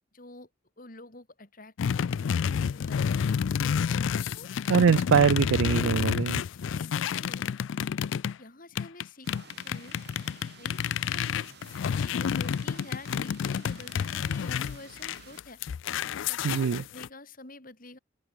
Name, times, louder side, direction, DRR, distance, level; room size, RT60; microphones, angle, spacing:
voice 1, 0.1-0.5 0.8-2.3 2.7-3.9 4.3-4.5 6.5-7.5 8.0-8.1 8.4-10.0 10.5-11.3 11.8-15.6 16.2-16.4 16.8-18.0, left 2 dB, 45° left, 3.3 m, -48 dB
sound 1, 1.8-8.4 8.8-17.1, left 7 dB, 70° left, 0.3 m, -29 dB
voice 2, 4.7-6.4 16.4-16.8, right 6 dB, 85° right, 0.4 m, -23 dB
sound 2, 9.2-15.4, right 5 dB, 55° right, 4.3 m, -52 dB
head